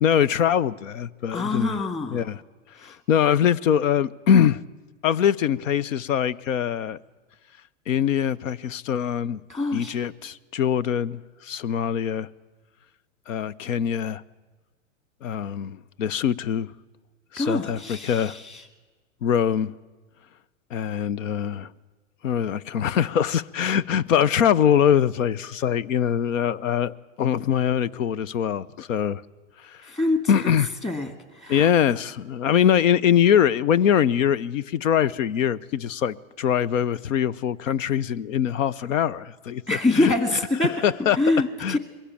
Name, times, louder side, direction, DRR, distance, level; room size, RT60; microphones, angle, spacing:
voice 1, 0.0-1.8 2.1-2.4 2.8-4.6 5.0-7.0 7.9-9.4 9.7-12.3 13.3-14.2 15.2-16.7 17.3-18.4 19.2-19.7 20.7-21.7 22.2-29.2 29.6-29.9 30.3-30.7 31.5-39.6 39.9-40.1 40.6-41.2 41.6-41.8, left 9 dB, 75° left, 0.8 m, -23 dB
voice 2, 1.3-2.2 2.8-2.9 9.5-10.0 17.4-18.6 29.9-30.6 30.8-31.1 31.4-31.7 39.7-40.7 41.1-41.8, left 2 dB, 15° left, 2.0 m, -25 dB
22.0 x 16.0 x 8.6 m
hypercardioid pair, 125°, 39 cm